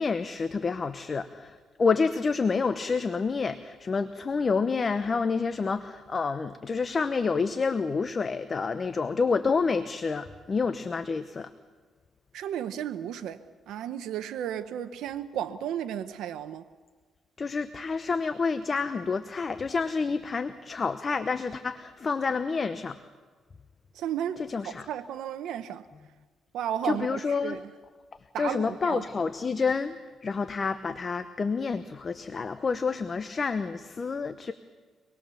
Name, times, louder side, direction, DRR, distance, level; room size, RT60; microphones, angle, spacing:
voice 1, 0.0-11.5 17.4-23.0 24.4-24.9 26.8-27.6 28.4-30.0 30.2-34.5, left 4 dB, 35° left, 1.0 m, -28 dB
voice 2, 12.3-13.4 13.7-16.6 23.9-25.8 26.5-27.6 28.3-29.0, right 10 dB, 80° right, 0.9 m, -33 dB
25.5 x 20.5 x 7.0 m
cardioid pair, 90°, 0 cm